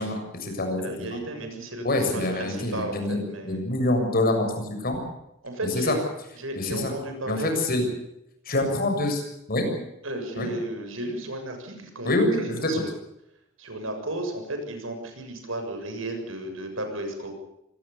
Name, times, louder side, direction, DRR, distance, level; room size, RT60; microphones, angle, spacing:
voice 1, 0.0-1.1 1.8-5.0 5.7-6.0 6.6-6.9 7.3-7.8 8.5-9.2 9.5-9.7 10.4-10.5 12.1-12.7, left 2 dB, 50° left, 5 dB, 7.1 m, -26 dB
voice 2, 0.8-3.6 5.4-6.0 6.4-7.5 10.0-12.8 13.6-17.4, right 1 dB, 80° right, 6 dB, 7.2 m, -34 dB
25.0 x 20.0 x 7.0 m, 0.84 s
head